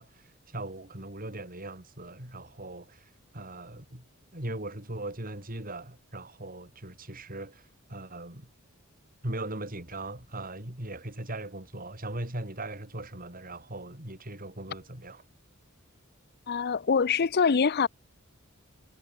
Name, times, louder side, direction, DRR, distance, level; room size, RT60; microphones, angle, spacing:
voice 1, 0.0-4.1 4.3-8.5 9.2-15.2, right 1 dB, 45° right, 6.2 m, -39 dB
voice 2, 16.5-17.9, left 5 dB, 50° left, 0.6 m, -24 dB
head